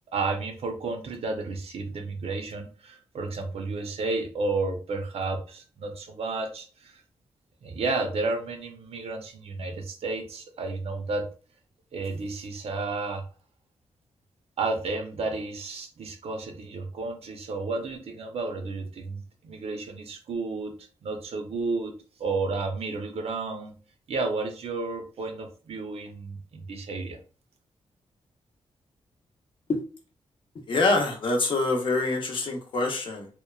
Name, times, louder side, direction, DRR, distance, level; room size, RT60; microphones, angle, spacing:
voice 1, 0.1-7.0 7.6-11.3 11.9-13.2 14.6-20.7 21.0-21.9 22.2-23.7 24.1-27.2, right 3 dB, 65° right, 4 dB, 0.6 m, -32 dB
voice 2, 30.7-33.3, left 2 dB, 50° left, 2 dB, 0.6 m, -25 dB
2.9 x 2.1 x 2.3 m, 0.37 s
wide cardioid pair, 145°, 11 cm